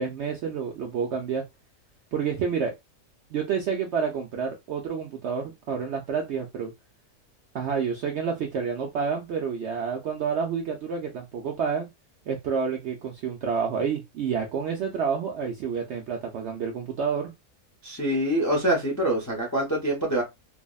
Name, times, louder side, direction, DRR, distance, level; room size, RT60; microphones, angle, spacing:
voice 1, 0.0-1.4 2.1-2.7 3.3-6.7 7.5-11.9 12.3-17.3, right 6 dB, 70° right, 0.6 m, -29 dB
voice 2, 17.8-20.2, right 1 dB, 25° left, 0.3 m, -25 dB
3.3 x 2.0 x 2.2 m
omnidirectional pair, 1.6 m